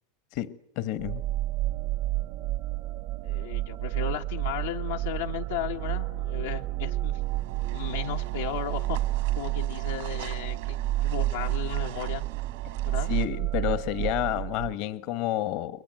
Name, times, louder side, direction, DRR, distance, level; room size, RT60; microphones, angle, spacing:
voice 1, 0.3-1.2 13.1-15.8, left 12 dB, 60° left, 1.3 m, -30 dB
sound 1, 1.0-14.7, right 16 dB, 60° right, 1.1 m, -30 dB
voice 2, 3.2-7.2 7.7-9.0 9.4-12.2 12.8-13.1, left 9 dB, 85° left, 1.3 m, -35 dB
sound 2, 7.2-13.3, right 16 dB, 75° right, 2.0 m, -43 dB
29.5 x 22.5 x 7.7 m
hypercardioid pair, 115°, 0 cm